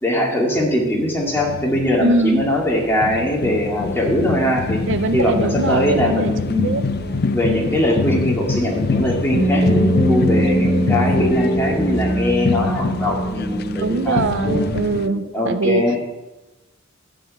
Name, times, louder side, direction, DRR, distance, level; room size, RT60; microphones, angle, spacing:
voice 1, 0.0-4.8 5.1-6.8 7.3-14.2 14.9-16.0, left 1 dB, 10° left, -2 dB, 2.2 m, -21 dB
sound 1, 0.5-15.1, left 4 dB, 50° left, 0.5 m, -25 dB
voice 2, 2.0-2.5 4.9-7.3 13.8-15.9, right 3 dB, 65° right, 11 dB, 0.6 m, -22 dB
sound 2, 8.7-14.7, right 1 dB, 25° left, 3.1 m, -22 dB
12.5 x 4.9 x 8.6 m, 1.1 s
head